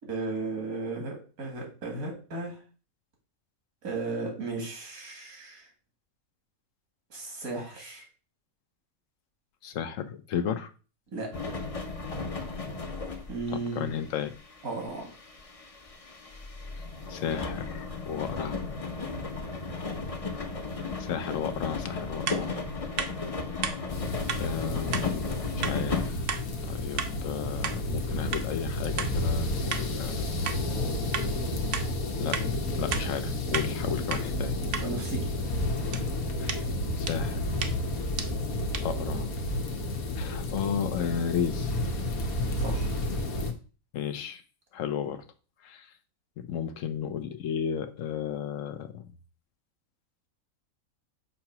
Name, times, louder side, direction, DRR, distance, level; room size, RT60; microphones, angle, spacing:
voice 1, 0.0-2.6 3.8-5.7 7.1-8.1 11.1-11.3 13.3-13.9 14.6-15.1 33.8-33.9 34.8-35.3 42.6-43.0, right 3 dB, 90° right, 2.4 m, -35 dB
voice 2, 9.6-10.7 13.8-14.3 17.1-18.6 21.0-22.6 24.4-26.2 26.6-30.4 32.2-32.4 32.8-34.6 36.4-36.6 37.0-37.4 38.8-39.3 40.2-41.7 43.9-44.4 44.7-45.2 45.6-45.9 46.4-49.0, left 8 dB, 70° left, 1.0 m, -33 dB
sound 1, 11.3-26.1, left 4 dB, 30° left, 0.7 m, -35 dB
sound 2, 22.3-22.4 23.0-23.1 23.6-23.8 24.3-24.4 24.9-25.1 25.6-25.8 26.3-26.4 27.0-27.1 27.6-27.8 28.3-28.5 29.0-29.1 29.7-29.9 30.5-30.6 31.1-31.3 31.7-31.9 32.3-32.5 32.9-33.1 33.5-33.7 34.1-34.2 34.7-34.9 35.9-39.2, right 7 dB, 65° right, 1.0 m, -34 dB
sound 3, 23.9-43.5, left 2 dB, 85° left, 1.4 m, -31 dB
6.4 x 2.9 x 5.8 m
omnidirectional pair, 1.5 m